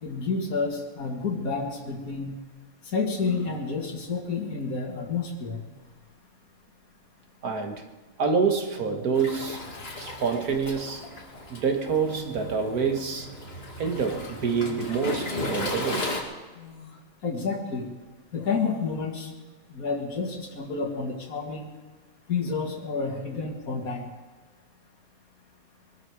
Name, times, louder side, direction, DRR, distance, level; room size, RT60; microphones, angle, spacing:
voice 1, 0.0-2.4 2.9-5.6 17.2-17.9 18.3-19.3 19.7-21.7 22.3-24.1, left 4 dB, 80° left, 2.5 m, -29 dB
sound 1, 3.2-3.7 5.2-5.3 5.6-6.1 7.5-7.7 8.8-9.5 10.2-11.2 11.9-12.0 12.1-13.0 14.6-15.2 15.7-15.8 16.5-17.0 18.4-19.0, left 2 dB, 60° left, 2.0 m, -46 dB
voice 2, 7.4-7.9 8.2-9.6 9.9-11.0 11.5-13.3 13.8-16.1, right 5 dB, 85° right, 2.0 m, -27 dB
Waves surf, 9.1-16.2, left 2 dB, 45° left, 2.3 m, -35 dB
22.0 x 12.0 x 4.8 m
omnidirectional pair, 1.5 m